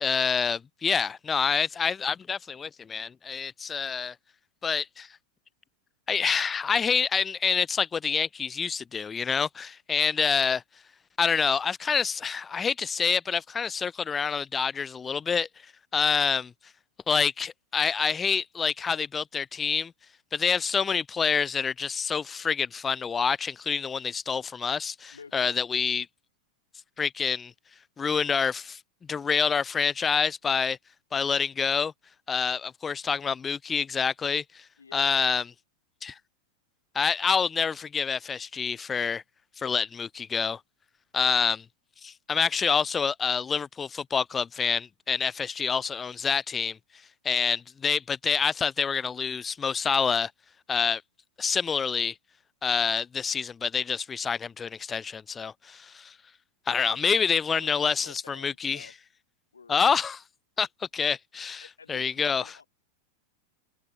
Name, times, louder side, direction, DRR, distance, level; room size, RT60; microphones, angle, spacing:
voice 1, 0.0-4.1 4.6-5.1 6.1-10.6 11.2-15.5 15.9-16.5 17.1-19.9 20.3-26.1 27.0-27.5 28.0-28.8 29.1-30.8 31.1-31.9 32.3-34.6 34.9-35.4 36.0-36.1 36.9-39.2 39.6-40.6 41.1-41.6 42.0-46.8 47.2-50.3 50.7-51.0 51.4-52.1 52.6-56.1 56.7-58.9 59.7-60.2 60.6-60.7 60.9-62.4, left 6 dB, 20° left, 0.3 m, -27 dB
voice 2, 25.1-25.6 34.8-35.1 56.7-57.3 57.5-58.9 59.5-60.0 61.6-62.6, left 5 dB, 75° left, 2.9 m, -49 dB
open air
figure-of-eight pair, 90°, 0 cm